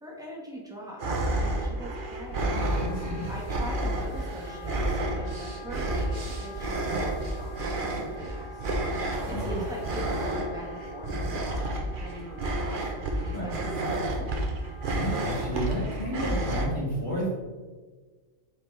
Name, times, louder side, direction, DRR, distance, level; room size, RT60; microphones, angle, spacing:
voice 1, 0.0-2.6 3.3-8.6 9.3-12.9 13.2-14.3, equal, 5° right, -2 dB, 1.2 m, -42 dB
sound 1, 1.0-16.6, right 1 dB, 45° right, 0.9 m, -30 dB
Wind instrument woodwind instrument, 1.8-15.9, left 1 dB, 75° left, 1.8 m, -46 dB
sound 2, 2.3-4.9 5.5-10.4, right 1 dB, 65° right, 1.9 m, -46 dB
voice 2, 2.8-3.3 9.2-9.6 13.3-13.5 14.9-17.4, equal, 55° left, -13 dB, 2.5 m, -32 dB
8.1 x 4.2 x 3.3 m, 1.4 s
omnidirectional pair, 1.4 m